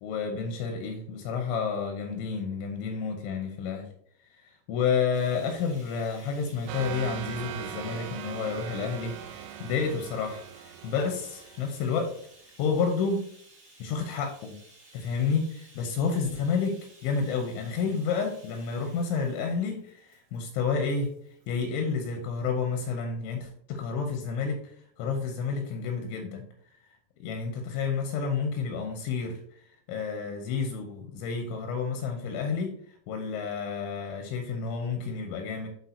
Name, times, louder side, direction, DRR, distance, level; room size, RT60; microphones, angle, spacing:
voice 1, 0.0-3.9 4.3-12.1 12.6-13.2 13.8-14.6 14.9-16.8 17.0-21.1 21.5-26.4 27.2-29.4 29.9-32.7 33.1-35.7, left 5 dB, 85° left, 4 dB, 2.8 m, -30 dB
Bathtub (filling or washing), 5.1-21.8 22.7-22.8 23.2-23.3, right 2 dB, 55° right, 1.4 m, -56 dB
sound 1, 6.7-12.1, right 10 dB, 85° right, 3.0 m, -40 dB
12.5 x 4.2 x 2.7 m, 0.63 s
omnidirectional pair, 5.9 m